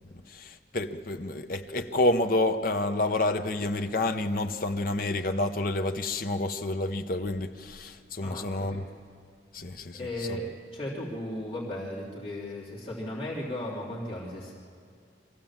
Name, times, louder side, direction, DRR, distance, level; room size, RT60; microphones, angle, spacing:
voice 1, 0.3-8.8 9.5-10.0 10.3-10.4, left 2 dB, 50° left, 0.9 m, -29 dB
voice 2, 8.2-8.8 9.9-14.5, left 1 dB, 30° left, 3.2 m, -36 dB
24.0 x 15.5 x 7.4 m
head